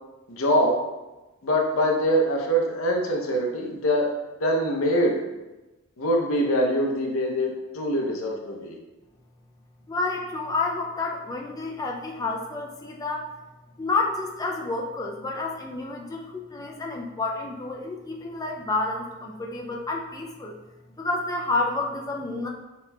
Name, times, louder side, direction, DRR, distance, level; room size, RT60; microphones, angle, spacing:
voice 1, 0.3-0.8 1.4-4.1 4.4-5.2 6.0-8.8, equal, 85° left, 1 dB, 0.7 m, -23 dB
voice 2, 9.9-13.3 13.8-20.5 21.0-22.5, left 3 dB, 20° left, 0 dB, 0.4 m, -29 dB
7.1 x 2.9 x 2.3 m, 1.1 s
head